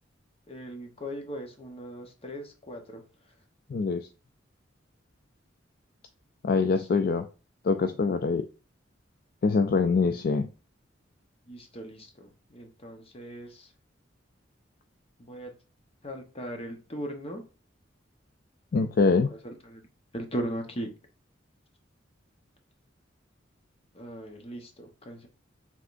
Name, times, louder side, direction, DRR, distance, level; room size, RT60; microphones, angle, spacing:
voice 1, 0.5-3.3 6.6-6.9 11.5-13.7 15.2-15.5 16.0-17.4 19.3-19.9 20.1-20.9 23.9-25.3, equal, 30° left, 0.9 m, -39 dB
voice 2, 3.7-4.1 6.4-7.3 7.6-8.5 9.4-10.5 18.7-19.3, left 4 dB, 50° left, 0.3 m, -24 dB
5.0 x 3.6 x 2.5 m
head